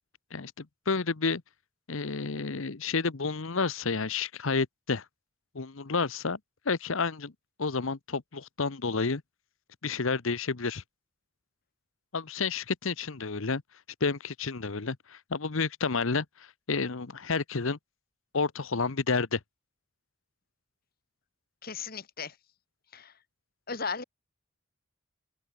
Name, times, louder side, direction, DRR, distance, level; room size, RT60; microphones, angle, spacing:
voice 1, 0.3-1.4 1.9-5.0 5.5-6.4 6.6-7.3 7.6-9.2 9.8-10.8 12.1-13.6 14.0-17.8 18.3-19.4, left 4 dB, 70° left, 0.9 m, -30 dB
voice 2, 21.6-22.4 22.9-23.2 23.7-24.0, left 5 dB, 45° left, 1.6 m, -36 dB
open air
head